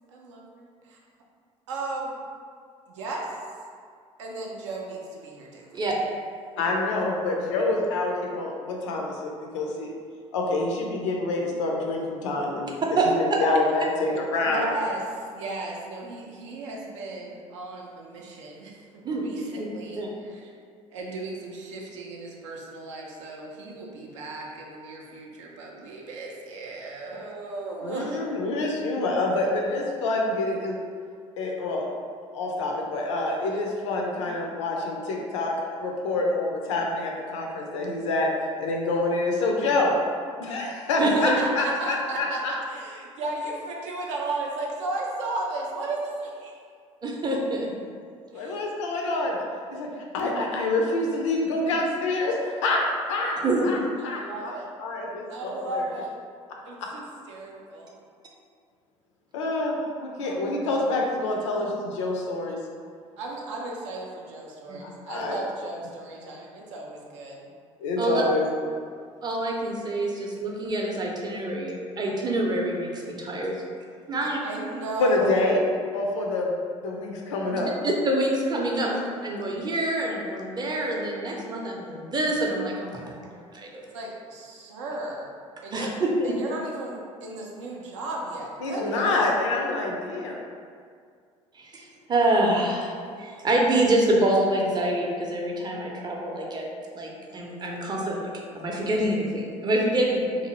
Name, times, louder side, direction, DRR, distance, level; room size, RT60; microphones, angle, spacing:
voice 1, 0.1-1.0 1.7-2.2 2.9-3.3 4.2-5.8 14.4-20.0 20.2-20.5 20.9-28.2 41.0-46.6 48.3-48.6 54.0-54.7 55.3-56.1 56.6-57.9 60.2-60.5 63.2-67.5 74.1-75.5 78.8-79.1 83.9-85.3 85.6-85.9 86.2-89.1, right 2 dB, 70° right, -1 dB, 0.5 m, -35 dB
voice 2, 6.6-9.9 10.3-12.8 13.2-14.8 27.8-30.8 31.4-31.9 32.3-38.3 38.6-40.0 40.4-42.5 48.3-49.4 49.7-49.9 50.1-52.8 53.1-53.4 53.6-53.8 54.0-54.5 54.8-55.9 56.8-56.9 59.3-62.6 64.8-65.4 67.8-68.7 75.0-75.7 75.9-76.6 76.8-77.7 88.6-90.4, left 2 dB, 70° left, 0 dB, 0.5 m, -27 dB
voice 3, 47.0-47.7 50.2-50.4 53.4-53.7 64.7-64.8 68.0-68.2 69.2-73.6 74.1-74.4 77.5-78.9 79.2-83.2 83.5-83.8 85.7-86.4 91.5-96.7 96.9-98.3 98.5-100.5, right 1 dB, 25° right, -1 dB, 0.6 m, -26 dB
2.6 x 2.4 x 2.9 m, 2.1 s
figure-of-eight pair, 55°, 16 cm